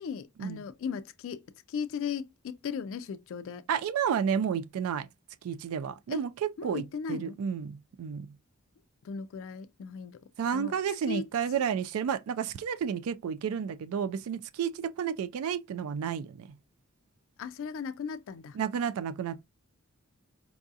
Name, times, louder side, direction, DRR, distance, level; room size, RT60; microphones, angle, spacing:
voice 1, 0.0-3.7 6.1-6.3 6.6-7.4 9.0-10.2 10.5-10.8 11.1-11.3 11.6-11.7 17.4-18.6, left 6 dB, 65° left, 0.3 m, -37 dB
voice 2, 3.7-5.1 5.4-6.3 6.6-6.8 7.1-8.3 10.4-16.5 18.6-19.4, right 7 dB, 75° right, 0.3 m, -31 dB
4.6 x 2.7 x 2.4 m
head